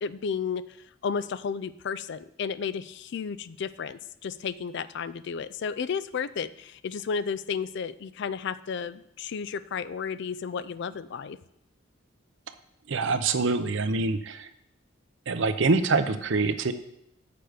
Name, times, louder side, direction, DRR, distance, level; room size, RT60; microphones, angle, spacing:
voice 1, 0.0-0.6 1.0-11.4, left 6 dB, 60° left, 16 dB, 0.4 m, -33 dB
voice 2, 12.9-14.5 15.3-16.7, right 3 dB, 65° right, 10 dB, 0.7 m, -25 dB
7.7 x 6.9 x 5.0 m, 0.78 s
head